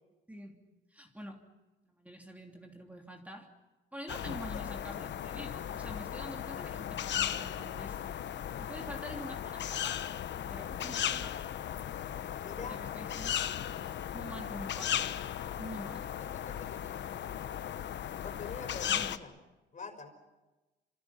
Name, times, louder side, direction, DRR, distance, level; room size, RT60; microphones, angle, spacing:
voice 1, 0.3-0.6 0.9-1.4 1.8-3.5 3.9-8.1 8.6-10.1 10.5-11.5 12.7-13.4 14.1-15.1 15.5-16.1 18.9-19.2, equal, 5° right, 1 dB, 3.1 m, -46 dB
sound 1, 4.1-19.2, left 10 dB, 65° left, 1.1 m, -36 dB
voice 2, 12.4-12.9 16.2-17.2 18.2-19.3 19.7-20.1, left 5 dB, 40° left, 7 dB, 5.2 m, -45 dB
29.0 x 26.5 x 5.8 m, 1.1 s
cardioid pair, 90°, 20 cm